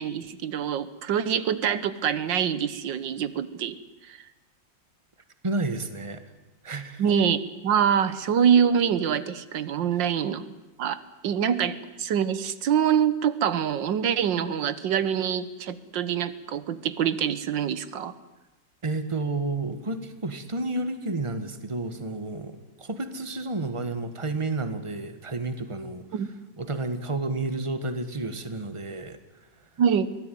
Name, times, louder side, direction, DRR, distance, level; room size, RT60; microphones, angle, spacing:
voice 1, 0.0-3.8 4.0-4.2 7.0-10.4 10.8-18.1 26.1-26.3 29.8-30.1, right 8 dB, 80° right, 15 dB, 1.7 m, -25 dB
voice 2, 5.4-6.2 6.6-7.0 18.8-26.2 26.6-29.2, right 2 dB, 15° right, 10 dB, 1.6 m, -31 dB
23.5 x 18.0 x 9.4 m, 1.1 s
omnidirectional pair, 2.0 m